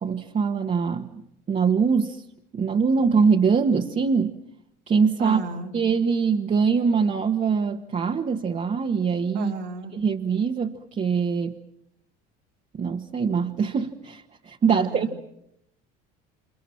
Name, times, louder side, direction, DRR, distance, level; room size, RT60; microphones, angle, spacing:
voice 1, 0.0-2.2 2.5-4.4 4.9-5.4 5.7-9.5 9.9-11.6 12.7-15.2, right 5 dB, 35° right, 1.7 m, -23 dB
voice 2, 5.2-5.7 9.3-10.0 14.7-15.2, right 5 dB, 85° right, 3.5 m, -34 dB
29.5 x 27.0 x 6.0 m
supercardioid pair, 85°, 21 cm